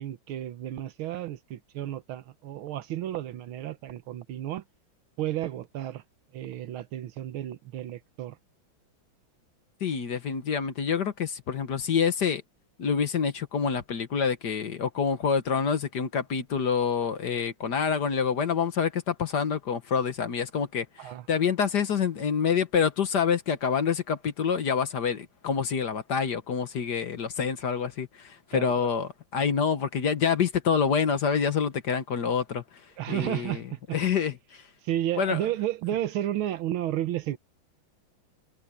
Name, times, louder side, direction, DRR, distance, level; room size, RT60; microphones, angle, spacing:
voice 1, 0.0-4.6 5.2-6.0 6.3-8.4 21.0-21.3 28.5-28.9 33.0-34.0 34.8-37.4, right 13 dB, 85° right, 1.8 m, -32 dB
voice 2, 9.8-12.4 12.8-33.6 33.9-34.7 35.2-35.4, left 6 dB, 55° left, 1.7 m, -27 dB
omnidirectional pair, 2.2 m